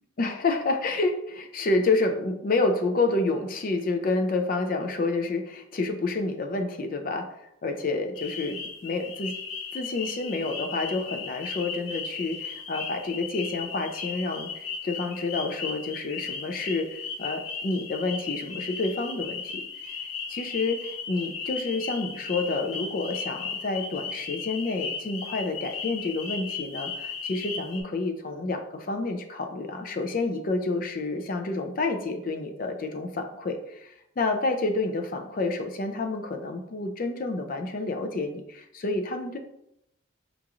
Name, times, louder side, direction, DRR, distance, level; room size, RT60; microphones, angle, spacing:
voice 1, 0.2-7.3 7.6-9.3 9.7-20.0 20.3-39.4, left 3 dB, 45° left, 5 dB, 0.4 m, -29 dB
sound 1, 8.1-27.8, left 5 dB, 85° left, 0.6 m, -36 dB
5.0 x 2.9 x 2.4 m, 0.79 s
head